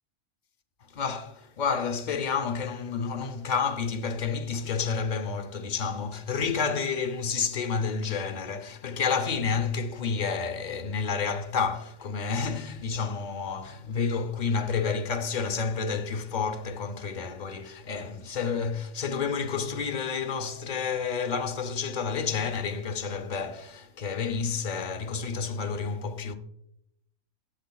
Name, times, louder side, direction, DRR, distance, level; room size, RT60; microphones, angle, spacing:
voice 1, 0.9-26.3, left 5 dB, 55° left, 0.5 m, -30 dB
12.0 x 7.9 x 2.2 m
omnidirectional pair, 1.4 m